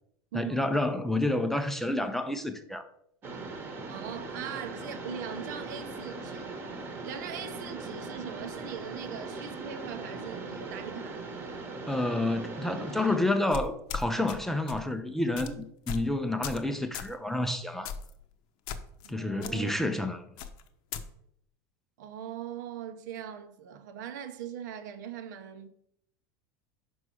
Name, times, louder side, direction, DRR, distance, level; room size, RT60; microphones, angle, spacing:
voice 1, 0.3-2.8 11.9-17.9 19.1-20.2, left 1 dB, 5° left, 0.4 m, -29 dB
Mechanisms, 3.2-13.2, right 3 dB, 25° right, 1.0 m, -40 dB
voice 2, 3.9-6.5 7.0-11.2 19.0-19.7 22.0-25.7, right 9 dB, 85° right, 0.9 m, -40 dB
sound 1, 13.5-14.4 14.7-14.9 15.4-15.5 15.9-16.1 16.4-16.7 16.9-17.1 17.9-18.1 18.7-19.1 19.4-19.5 20.4-21.0, left 7 dB, 50° left, 0.7 m, -37 dB
5.3 x 4.8 x 6.1 m
supercardioid pair, 160°, 10 cm